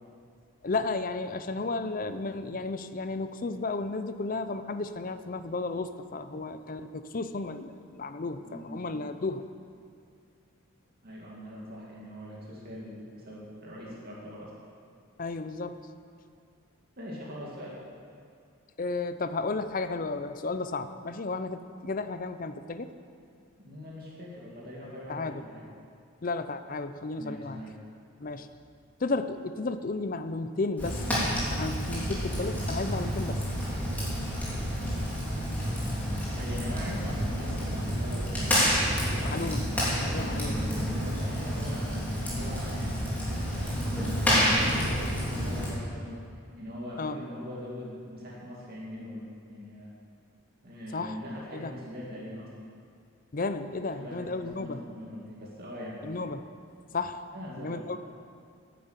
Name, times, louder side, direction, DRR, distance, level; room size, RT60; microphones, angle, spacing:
voice 1, 0.6-9.4 15.2-15.9 18.8-22.9 25.1-25.4 26.2-27.6 28.2-28.5 29.0-31.0 31.5-33.5 39.2-39.7 40.1-40.6 47.0-47.2 50.9-51.2 51.5-51.7 53.3-54.8 56.0-56.4 56.9-57.3 57.5-58.0, left 3 dB, 40° left, 10 dB, 0.5 m, -33 dB
voice 2, 8.4-9.0 11.0-14.5 17.0-17.8 23.6-25.6 27.2-27.7 36.4-39.3 40.0-49.9 50.6-52.5 53.9-56.0 57.3-57.8, left 1 dB, 45° right, -5 dB, 2.3 m, -41 dB
Fire, 30.8-45.7, equal, 10° left, 3.1 m, -29 dB
10.0 x 9.2 x 8.1 m, 2.3 s
head